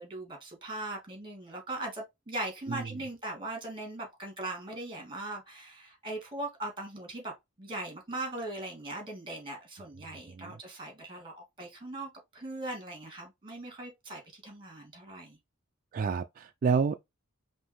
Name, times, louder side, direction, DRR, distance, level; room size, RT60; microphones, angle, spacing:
voice 1, 0.0-7.3 7.6-15.4, right 2 dB, 25° right, 2.1 m, -40 dB
voice 2, 15.9-17.0, right 5 dB, 40° right, 0.3 m, -29 dB
5.4 x 2.6 x 3.0 m
head